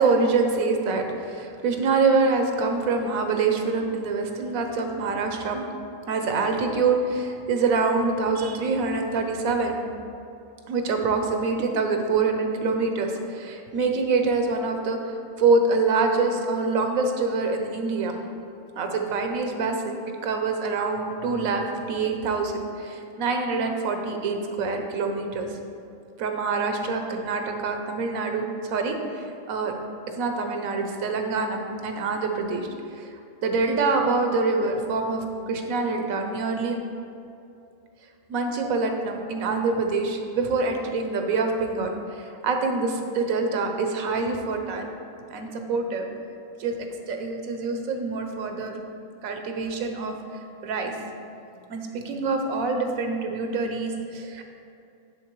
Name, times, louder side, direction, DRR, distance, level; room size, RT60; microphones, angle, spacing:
voice 1, 0.0-5.7 6.1-9.8 10.7-18.2 18.8-25.5 26.2-29.7 30.1-32.7 33.0-33.1 33.4-36.8 38.3-44.9 45.3-46.1 46.6-48.8 49.2-50.2 50.6-51.0 51.7-54.4, right 4 dB, 90° right, 4 dB, 1.1 m, -25 dB
10.0 x 3.9 x 3.0 m, 2.6 s
omnidirectional pair, 1.4 m